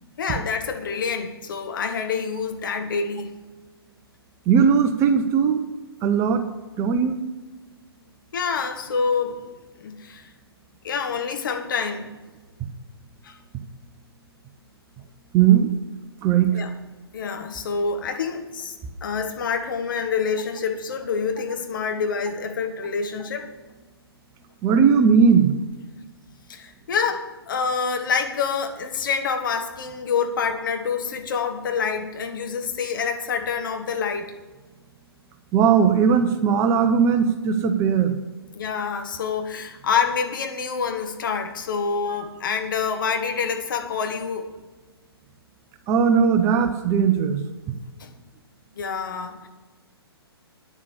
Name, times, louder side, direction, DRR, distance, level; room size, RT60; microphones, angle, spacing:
voice 1, 0.2-3.4 8.3-9.4 9.8-10.3 10.8-12.1 13.2-13.4 16.5-16.7 17.1-18.7 19.0-23.5 26.5-34.3 38.5-44.5 48.0-48.1 48.7-49.5, left 6 dB, 55° left, 6 dB, 1.4 m, -27 dB
voice 2, 4.5-5.6 6.0-6.4 6.8-7.2 15.3-15.7 16.2-16.6 24.6-25.5 35.5-38.2 42.1-42.2 45.9-47.4, right 7 dB, 20° right, 8 dB, 0.7 m, -18 dB
9.6 x 7.4 x 8.1 m, 1.2 s
figure-of-eight pair, 125°, 13 cm